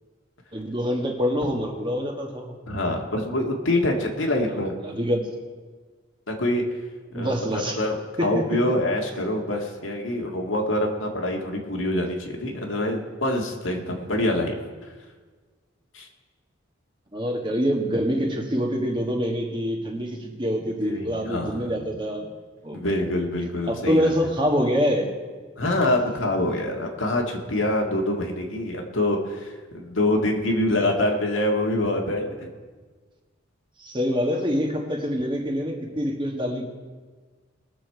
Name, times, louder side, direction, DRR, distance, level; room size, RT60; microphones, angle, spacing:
voice 1, 0.5-2.6 4.5-4.6 4.8-5.2 7.1-7.8 8.2-8.6 17.1-22.3 22.6-22.8 23.7-25.1 25.6-25.7 33.8-36.7, equal, 25° right, 2 dB, 1.5 m, -25 dB
voice 2, 2.7-4.7 6.3-6.6 7.1-7.3 7.8-14.6 15.9-16.1 20.8-21.8 22.7-24.1 25.6-32.5, left 1 dB, 80° left, 1 dB, 1.8 m, -25 dB
20.5 x 7.2 x 4.6 m, 1.4 s
head